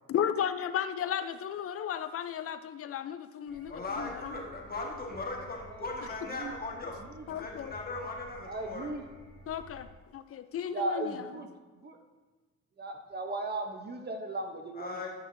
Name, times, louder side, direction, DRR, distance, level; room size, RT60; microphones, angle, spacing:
voice 1, 0.1-4.3 7.3-7.7 9.5-11.1, left 9 dB, 50° left, 11 dB, 0.5 m, -34 dB
Clock strike, 3.5-9.9, right 1 dB, 60° right, 2.2 m, -52 dB
voice 2, 3.7-7.0 7.3-8.9 14.8-15.1, left 3 dB, 30° left, 0 dB, 1.5 m, -38 dB
voice 3, 8.5-9.0 10.7-12.0 12.8-15.0, right 2 dB, 35° right, 4 dB, 0.7 m, -37 dB
9.2 x 5.9 x 2.6 m, 1.3 s
cardioid pair, 90°, 30 cm